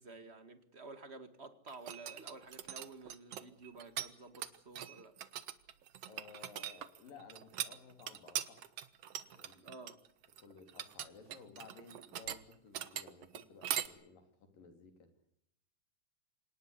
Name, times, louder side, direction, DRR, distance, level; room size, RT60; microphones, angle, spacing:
voice 1, 0.0-5.2 9.5-10.0, right 3 dB, 25° right, 1.6 m, -52 dB
sound 1, 1.7-4.1 4.3-13.9, right 11 dB, 60° right, 1.9 m, -41 dB
voice 2, 6.1-8.6 9.3-9.6 10.4-15.1, left 5 dB, 80° left, 5.1 m, -56 dB
26.0 x 19.0 x 8.3 m
omnidirectional pair, 3.9 m